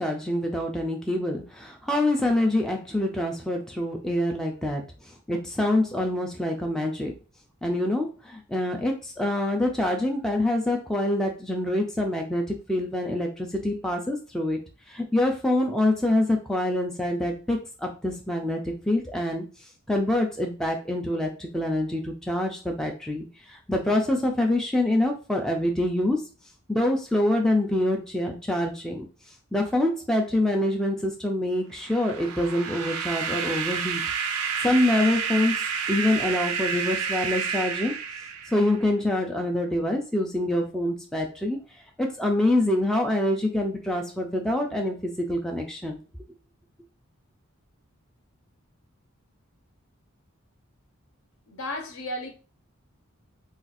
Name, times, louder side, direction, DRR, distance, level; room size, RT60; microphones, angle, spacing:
voice 1, 0.0-7.1 7.6-14.6 14.9-19.4 19.9-26.3 26.7-29.0 29.5-34.0 34.6-37.9 38.5-41.6 42.0-46.0, left 1 dB, 5° left, 0.3 m, -26 dB
sound 1, 31.8-38.8, right 6 dB, 80° right, 0.5 m, -30 dB
voice 2, 51.5-52.3, left 1 dB, 65° left, 0.7 m, -34 dB
2.5 x 2.3 x 4.0 m
head